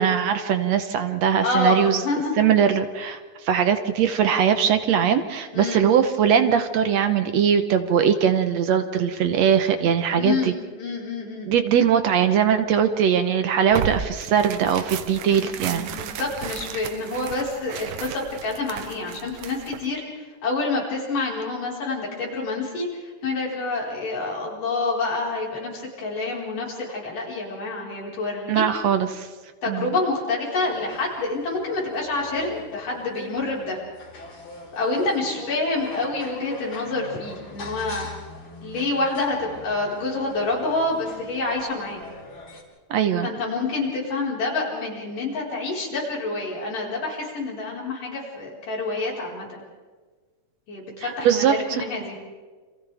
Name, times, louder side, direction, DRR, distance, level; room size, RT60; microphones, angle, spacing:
voice 1, 0.0-2.0 2.4-3.2 3.4-10.5 11.5-15.9 28.5-29.3 29.7-29.9 42.9-43.3 51.0-51.8, right 8 dB, 65° right, 8 dB, 1.9 m, -21 dB
voice 2, 1.4-2.3 5.5-5.8 10.1-11.6 15.2-20.0 20.4-22.9 23.2-28.6 29.6-33.8 34.7-38.1 38.6-42.0 43.2-49.5 50.7-52.2, left 3 dB, 80° left, -3 dB, 6.4 m, -27 dB
Tearing, 13.7-19.9, right 9 dB, 80° right, 2.6 m, -34 dB
sound 1, 30.5-42.6, left 2 dB, 55° left, 5.3 m, -41 dB
30.0 x 27.0 x 3.5 m, 1.4 s
omnidirectional pair, 3.7 m